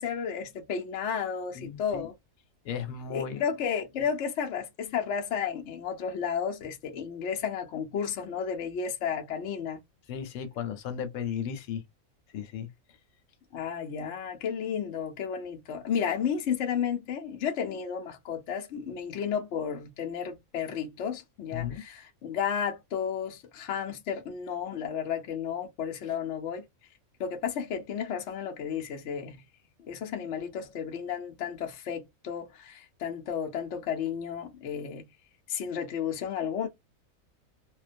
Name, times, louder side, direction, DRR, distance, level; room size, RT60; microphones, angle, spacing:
voice 1, 0.0-2.1 3.1-9.8 13.5-26.6 27.2-29.4 29.8-35.1 35.5-36.7, left 7 dB, 65° left, 0.8 m, -32 dB
voice 2, 1.5-2.1 2.6-3.4 10.1-11.8 12.3-12.7 21.5-21.8, left 8 dB, 90° left, 1.1 m, -35 dB
2.4 x 2.2 x 2.4 m
omnidirectional pair, 1.5 m